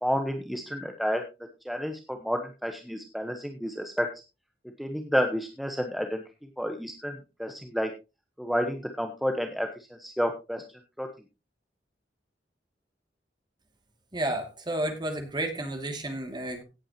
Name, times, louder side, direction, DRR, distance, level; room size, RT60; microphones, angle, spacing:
voice 1, 0.0-1.3 1.6-4.1 4.8-6.2 6.6-7.9 8.4-9.7 10.0-10.6 11.0-11.1, equal, ahead, 4 dB, 1.1 m, -30 dB
voice 2, 14.1-16.6, right 1 dB, 25° right, 5 dB, 2.5 m, -31 dB
17.0 x 8.7 x 3.0 m, 0.28 s
head